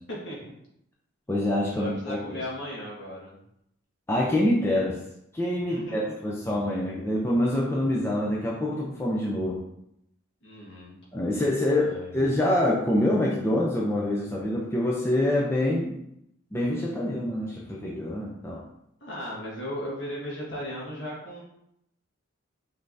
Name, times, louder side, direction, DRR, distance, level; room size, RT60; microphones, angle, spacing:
voice 1, 0.1-0.5 1.8-3.4 5.7-6.1 10.4-11.0 11.8-12.3 18.5-18.6 19.0-21.4, equal, 55° left, -5 dB, 1.5 m, -36 dB
voice 2, 1.3-2.4 4.1-5.0 5.3-9.6 11.1-16.0 16.5-18.6, left 1 dB, 10° left, -4 dB, 0.5 m, -26 dB
5.5 x 3.3 x 2.7 m, 0.77 s
head